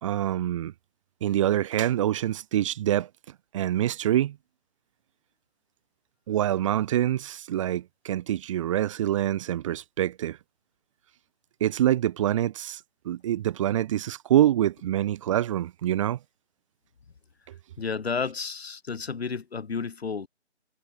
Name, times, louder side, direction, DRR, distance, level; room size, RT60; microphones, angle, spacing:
voice 1, 0.0-0.7 1.2-3.1 3.5-4.4 6.3-10.4 11.6-12.8 13.0-16.2, right 12 dB, 25° right, 4.1 m, -25 dB
voice 2, 17.8-20.3, left 5 dB, 60° left, 6.5 m, -31 dB
hypercardioid pair, 160°, 35 cm